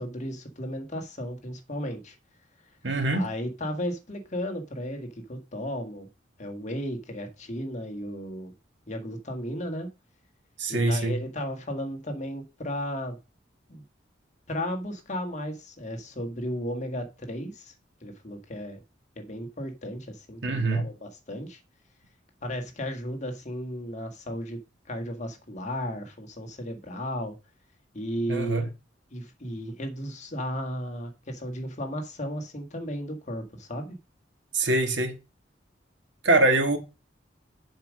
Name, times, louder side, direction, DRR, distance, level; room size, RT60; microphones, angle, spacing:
voice 1, 0.0-2.2 3.1-6.1 6.4-8.5 8.9-9.9 10.7-13.2 13.7-13.8 14.5-17.7 18.0-18.8 19.2-21.6 22.4-24.6 24.9-27.3 27.9-28.7 29.1-33.9, equal, 40° left, 1.7 m, -34 dB
voice 2, 2.8-3.3 10.6-11.2 20.4-20.8 28.3-28.7 34.5-35.1 36.2-36.8, right 2 dB, 80° right, 2.0 m, -23 dB
7.3 x 5.1 x 6.3 m
head